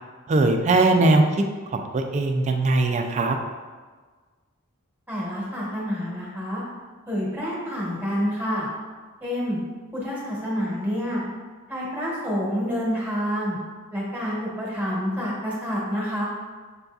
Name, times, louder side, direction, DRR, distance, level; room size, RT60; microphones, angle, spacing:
voice 1, 0.3-1.2 1.7-3.4, right 2 dB, 30° right, 4 dB, 0.3 m, -20 dB
voice 2, 5.1-6.6 7.1-8.7 9.2-9.6 9.9-11.2 11.7-13.6 13.9-16.2, equal, 10° right, -6 dB, 1.0 m, -28 dB
6.7 x 2.6 x 2.3 m, 1.4 s
head